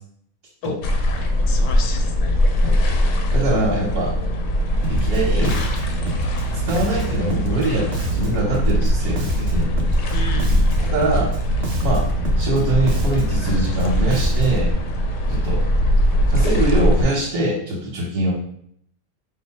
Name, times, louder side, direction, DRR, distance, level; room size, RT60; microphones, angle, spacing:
sound 1, 0.8-17.0, equal, 65° left, 0.9 m, -21 dB
voice 1, 1.5-2.4 10.1-11.1, left 4 dB, 85° left, 4 dB, 1.2 m, -32 dB
voice 2, 3.3-4.2 4.9-5.6 6.6-9.7 10.9-11.3 11.8-12.1 12.4-14.7 15.3-15.6 16.3-18.3, right 1 dB, 85° right, -4 dB, 1.5 m, -23 dB
Bass guitar, 4.8-14.7, equal, 60° right, 0.6 m, -28 dB
4.7 x 2.0 x 4.2 m, 0.66 s
omnidirectional pair, 1.6 m